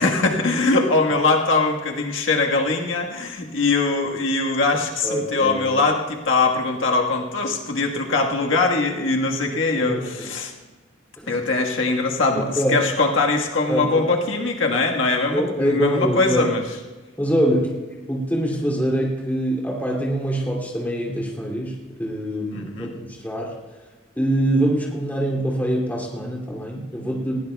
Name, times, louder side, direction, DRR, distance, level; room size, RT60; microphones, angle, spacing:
voice 1, 0.0-10.5 11.3-16.6 22.5-22.9, left 3 dB, 85° left, 1 dB, 1.5 m, -22 dB
voice 2, 5.0-5.8 9.7-10.3 11.2-11.5 12.3-12.9 13.7-14.1 15.3-16.5 17.2-17.8 18.1-23.6 24.2-27.4, right 1 dB, 10° left, -3 dB, 2.7 m, -24 dB
20.0 x 16.5 x 2.3 m, 1.3 s
head